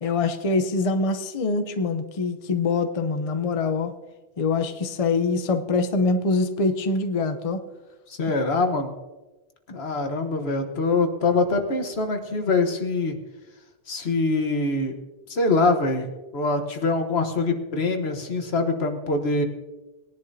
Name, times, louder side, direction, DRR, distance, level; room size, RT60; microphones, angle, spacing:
voice 1, 0.0-3.9 4.4-7.6, left 3 dB, 40° left, 8 dB, 0.7 m, -24 dB
voice 2, 8.1-8.9 9.7-13.2 13.9-15.0 15.3-19.4, left 3 dB, 75° left, 5 dB, 1.4 m, -24 dB
20.5 x 10.5 x 2.7 m, 1.1 s
omnidirectional pair, 1.1 m